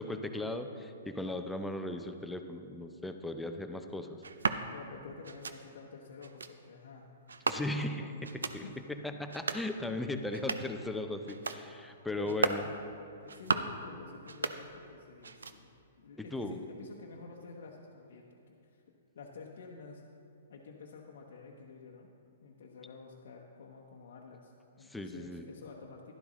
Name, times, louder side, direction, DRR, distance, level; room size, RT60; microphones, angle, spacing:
voice 1, 0.0-4.2 7.5-8.6 8.9-12.6 16.3-16.6 24.9-25.5, left 2 dB, 5° left, 6 dB, 0.6 m, -37 dB
sound 1, 4.2-4.6 5.2-5.6 6.2-6.5 7.3-7.9 8.2-8.6 9.2-9.7 10.2-10.8 11.2-11.6 12.2-12.7 13.2-13.8 14.2-14.9 15.2-15.8, right 4 dB, 85° right, 0.5 m, -35 dB
voice 2, 4.7-7.1 8.0-8.2 8.6-8.8 9.9-10.0 12.1-12.7 13.2-18.8 19.1-20.0 20.5-22.1 22.4-26.1, left 5 dB, 65° left, -2 dB, 0.9 m, -50 dB
11.5 x 11.5 x 3.1 m, 2.5 s
hypercardioid pair, 120°, 0 cm